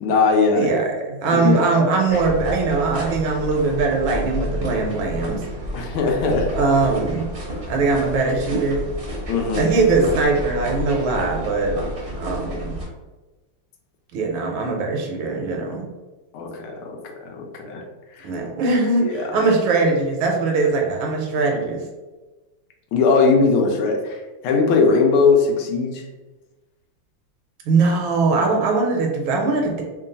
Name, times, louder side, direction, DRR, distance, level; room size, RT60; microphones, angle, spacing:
voice 1, 0.0-0.7 1.3-2.2 5.7-6.5 9.3-9.7 16.3-16.9 17.3-17.8 18.1-18.3 19.0-19.4 22.9-26.0, left 4 dB, 75° left, 1 dB, 1.5 m, -20 dB
voice 2, 0.5-5.4 6.5-7.2 7.7-8.8 9.5-11.8 12.2-12.7 14.1-15.9 18.2-21.8 27.7-29.8, right 3 dB, 75° right, 1 dB, 1.4 m, -21 dB
sound 1, 2.1-12.9, equal, 40° right, 0.8 m, -30 dB
3.7 x 2.4 x 3.9 m, 1.2 s
omnidirectional pair, 2.4 m